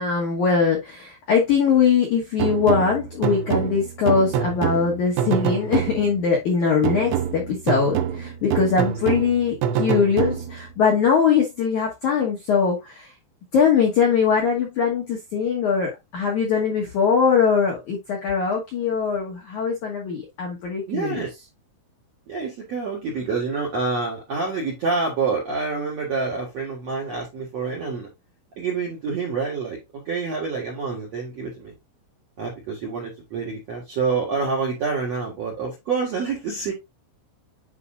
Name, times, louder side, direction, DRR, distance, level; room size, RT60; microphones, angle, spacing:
voice 1, 0.0-13.1 13.5-21.2, left 6 dB, 75° left, 1.8 m, -21 dB
sound 1, 2.4-6.3 6.8-10.7, right 9 dB, 80° right, 2.9 m, -26 dB
voice 2, 20.9-21.3 22.3-28.1 28.6-29.8 30.0-31.7 32.4-36.7, right 4 dB, 60° right, 1.7 m, -27 dB
9.6 x 4.9 x 2.5 m
omnidirectional pair, 5.6 m